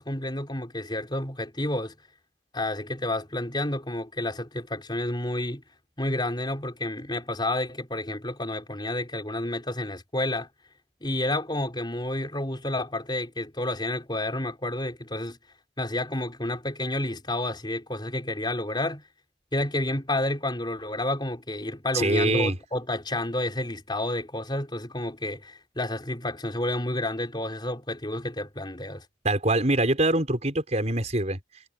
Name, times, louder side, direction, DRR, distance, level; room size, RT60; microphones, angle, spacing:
voice 1, 0.0-1.9 2.5-5.6 6.0-10.5 11.0-15.4 15.8-19.0 19.5-29.0, left 1 dB, 25° left, 4.2 m, -30 dB
voice 2, 21.9-22.6 29.2-31.4, right 2 dB, 35° right, 5.5 m, -24 dB
head